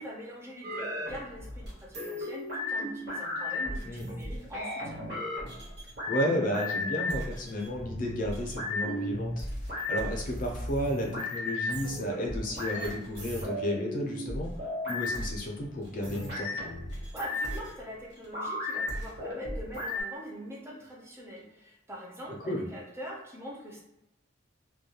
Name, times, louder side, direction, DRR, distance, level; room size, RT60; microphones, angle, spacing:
voice 1, 0.0-5.0 16.9-23.8, equal, 15° right, -3 dB, 0.4 m, -43 dB
sound 1, 0.6-20.0, left 1 dB, 55° right, 0.9 m, -35 dB
voice 2, 6.1-9.5 9.9-16.5 22.5-22.7, equal, 45° left, 0 dB, 0.5 m, -32 dB
2.2 x 2.2 x 2.8 m, 0.90 s
head